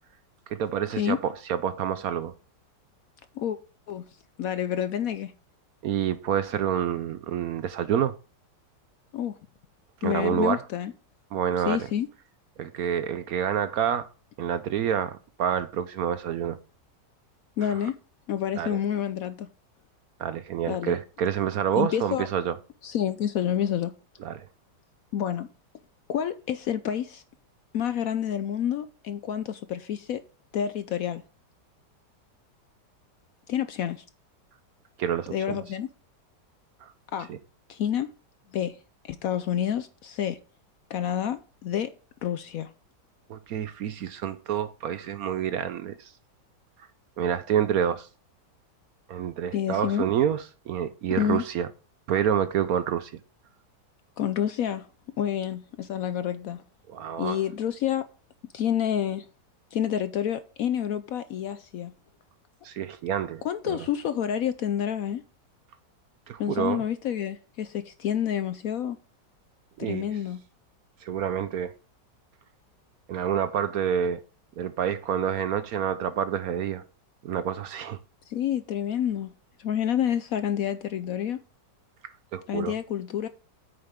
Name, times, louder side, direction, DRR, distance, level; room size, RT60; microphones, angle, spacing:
voice 1, 0.5-2.3 5.8-8.1 10.0-10.6 11.3-11.9 12.6-14.1 14.4-16.6 17.7-17.8 18.6-18.8 20.2-22.6 24.2-24.5 35.0-35.6 36.8-36.9 37.3-37.4 43.3-46.1 47.2-48.1 49.1-51.7 52.1-53.1 56.9-57.4 62.6-63.8 66.3-66.8 69.8-70.1 71.0-71.7 73.1-74.2 74.6-76.8 77.2-78.0 82.3-82.7, right 9 dB, 65° right, 1.0 m, -28 dB
voice 2, 4.4-5.3 9.1-9.4 10.0-10.9 11.6-12.1 17.6-18.0 18.3-19.5 20.7-20.9 21.8-22.3 22.8-23.9 25.1-25.5 26.1-27.2 27.7-30.2 30.5-31.2 33.5-34.0 35.3-35.9 37.1-37.3 37.7-38.1 38.5-38.8 39.0-40.4 40.9-41.9 42.2-42.7 49.5-50.0 51.2-51.4 54.2-54.9 55.2-56.6 57.2-58.1 58.5-59.3 59.7-61.9 63.4-65.2 66.4-69.0 69.8-70.4 78.3-79.3 79.6-81.4 82.5-83.3, left 9 dB, 70° left, 0.9 m, -28 dB
8.9 x 6.8 x 3.6 m
omnidirectional pair, 1.9 m